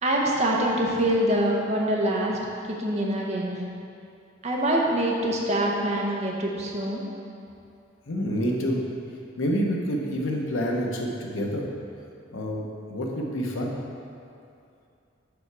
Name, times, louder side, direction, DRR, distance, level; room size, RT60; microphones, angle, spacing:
voice 1, 0.0-2.4 2.7-3.6 4.4-7.0, right 1 dB, 35° right, -2 dB, 0.8 m, -25 dB
voice 2, 8.1-8.8 9.4-11.7 12.3-12.6 12.9-13.7, equal, 90° left, 0 dB, 0.9 m, -27 dB
5.7 x 5.2 x 4.7 m, 2.6 s
head